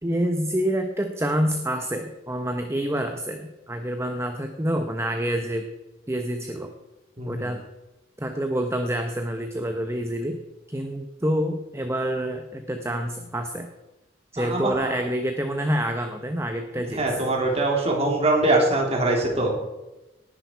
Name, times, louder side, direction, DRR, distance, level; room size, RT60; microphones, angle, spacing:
voice 1, 0.0-5.6 6.1-6.7 7.3-7.6 8.2-10.4 10.7-13.7 14.3-17.3, equal, 15° right, 5 dB, 1.0 m, -27 dB
voice 2, 7.2-7.5 14.4-14.9 16.8-19.7, right 2 dB, 35° right, 0 dB, 3.4 m, -23 dB
19.0 x 10.5 x 4.6 m, 1.0 s
head